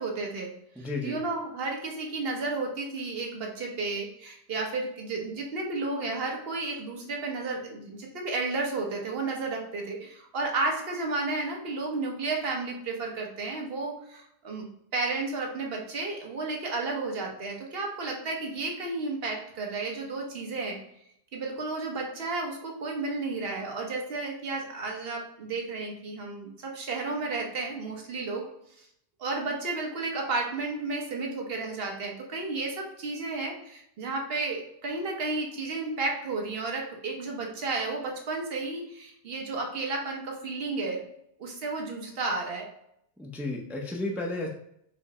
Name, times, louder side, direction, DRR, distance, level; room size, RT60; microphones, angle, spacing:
voice 1, 0.0-0.6 1.0-14.7 14.9-20.8 21.3-28.5 28.8-28.9 29.2-41.1 41.4-42.7, right 3 dB, 55° right, 1 dB, 1.1 m, -32 dB
voice 2, 0.8-1.2 43.2-44.5, left 2 dB, 5° right, 0 dB, 0.3 m, -32 dB
4.9 x 2.1 x 4.7 m, 0.74 s
omnidirectional pair, 1.2 m